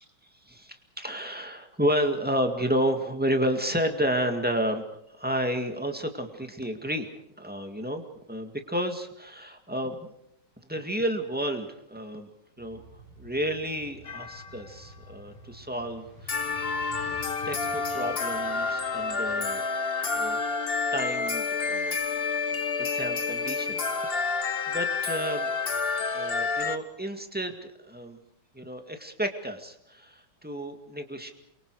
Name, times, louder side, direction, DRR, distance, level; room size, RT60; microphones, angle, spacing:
voice 1, 0.5-4.8 5.1-7.1 7.4-10.1 10.7-12.3 12.6-12.8 13.2-16.6 17.4-19.6 20.1-20.4 20.9-22.0 22.8-23.8 24.1-24.2 24.7-25.5 26.1-27.6 27.8-28.2 28.5-31.3, equal, 5° right, 5 dB, 1.8 m, -31 dB
sound 1, 12.6-19.5, right 1 dB, 60° right, 8.3 m, -49 dB
sound 2, 14.0-14.7 16.3-26.8, left 4 dB, 40° left, 0.8 m, -29 dB
29.0 x 24.0 x 4.9 m, 0.76 s
omnidirectional pair, 2.4 m